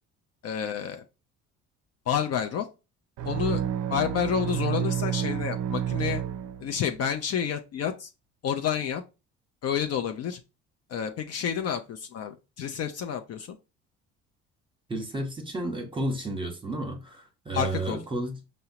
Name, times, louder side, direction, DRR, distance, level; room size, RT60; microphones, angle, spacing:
voice 1, 0.4-1.0 2.1-2.7 3.2-3.6 3.9-6.2 6.6-8.1 8.4-9.0 9.6-10.4 10.9-13.6 17.5-18.0, left 8 dB, 45° left, 0.5 m, -29 dB
sound 1, 3.2-7.0, right 10 dB, 60° right, 0.5 m, -30 dB
voice 2, 14.9-18.4, right 1 dB, 15° right, 1.0 m, -32 dB
5.5 x 2.0 x 2.8 m
hypercardioid pair, 65°, 34 cm